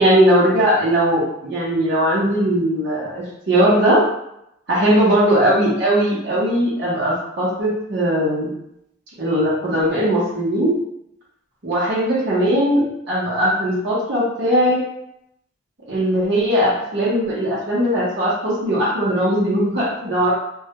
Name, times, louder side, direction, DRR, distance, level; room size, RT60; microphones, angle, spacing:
voice 1, 0.0-4.0 4.7-8.5 9.2-10.8 11.6-14.8 15.9-20.3, equal, 60° right, -8 dB, 0.8 m, -19 dB
2.3 x 2.2 x 2.8 m, 0.79 s
head